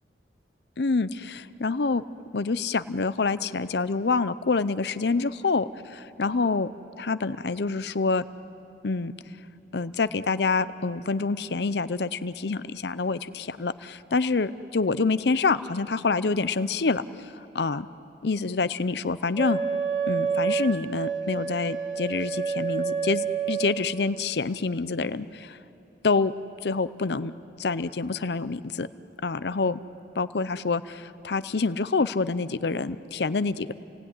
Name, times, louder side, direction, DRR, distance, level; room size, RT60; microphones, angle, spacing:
voice 1, 0.8-2.0 2.3-6.7 7.0-8.2 8.8-9.1 9.7-17.0 17.5-17.9 18.2-19.6 20.1-25.6 26.0-26.3 26.6-27.3 27.6-28.9 29.2-29.8 30.2-33.7, left 4 dB, 70° left, 14 dB, 0.7 m, -27 dB
Wind instrument woodwind instrument, 19.4-23.8, right 6 dB, 25° right, 2.0 m, -28 dB
29.0 x 19.0 x 9.8 m, 2.8 s
head